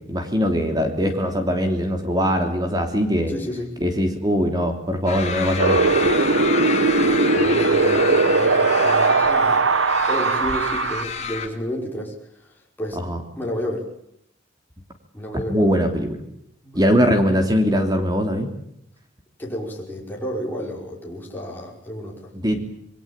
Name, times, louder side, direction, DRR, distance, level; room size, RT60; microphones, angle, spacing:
voice 1, 0.1-3.3 3.8-5.8 13.0-13.2 15.5-16.2 16.7-18.5 22.3-22.6, equal, 20° right, 6 dB, 3.1 m, -21 dB
voice 2, 3.3-3.7 7.0-9.7 10.1-13.1 13.4-13.9 15.1-15.9 16.6-17.0 19.4-22.3, equal, 10° left, -2 dB, 5.5 m, -31 dB
sound 1, 5.1-11.5, left 6 dB, 35° left, 3.8 m, -29 dB
Wind, 5.6-11.0, right 3 dB, 85° right, 1.4 m, -19 dB
27.0 x 22.5 x 8.9 m, 0.75 s
head